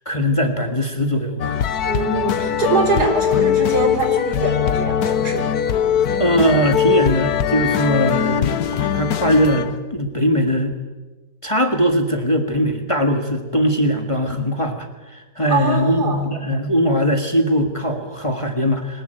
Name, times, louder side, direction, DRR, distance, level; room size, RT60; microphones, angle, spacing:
voice 1, 0.1-1.7 6.2-10.8 11.4-19.0, equal, 20° left, 5 dB, 1.8 m, -20 dB
sound 1, 1.4-9.8, left 9 dB, 70° left, 1.4 m, -21 dB
voice 2, 1.8-5.4 15.5-16.2, right 3 dB, 70° right, 4 dB, 4.4 m, -22 dB
21.0 x 19.5 x 9.1 m, 1.2 s
omnidirectional pair, 1.8 m